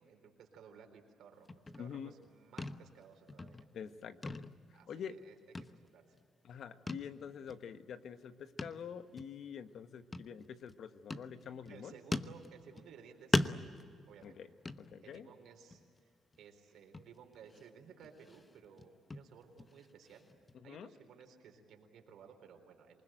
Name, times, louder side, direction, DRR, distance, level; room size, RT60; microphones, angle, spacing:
voice 1, 0.0-3.7 4.7-5.4 5.8-6.2 11.7-13.8 14.1-14.4 15.0-20.3 20.6-23.0, right 6 dB, 75° right, 4 dB, 4.1 m, -57 dB
sound 1, 1.5-2.3 2.6-3.0 3.3-3.9 4.2-5.3 5.6-6.2 6.9-7.1 7.5-7.6 8.6-8.9 9.2-9.3 10.1-10.7 11.1-11.8 12.1-13.0 13.3-15.3 15.7-16.0 16.3-16.4 16.9-17.7 18.0-20.5, left 2 dB, 25° left, 1.0 m, -40 dB
voice 2, 1.8-2.1 3.7-5.2 6.4-12.0 14.2-14.5 14.8-15.3 20.5-20.9, left 7 dB, 65° left, 10 dB, 1.2 m, -47 dB
27.0 x 20.0 x 9.1 m, 2.1 s
cardioid pair, 90°, 0 cm